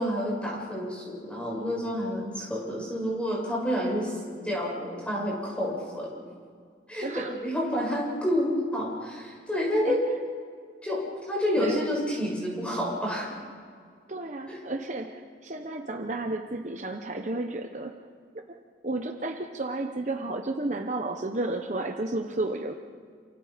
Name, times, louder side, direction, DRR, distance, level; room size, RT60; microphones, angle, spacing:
voice 1, 0.0-6.1 6.9-7.1 7.4-10.0 10.8-13.3 14.5-14.6, equal, 5° left, -3 dB, 7.3 m, -29 dB
voice 2, 7.0-7.3 9.8-10.0 11.6-11.8 14.1-18.0 18.8-22.7, right 2 dB, 40° right, 4 dB, 1.0 m, -32 dB
28.5 x 28.0 x 5.2 m, 2.1 s
head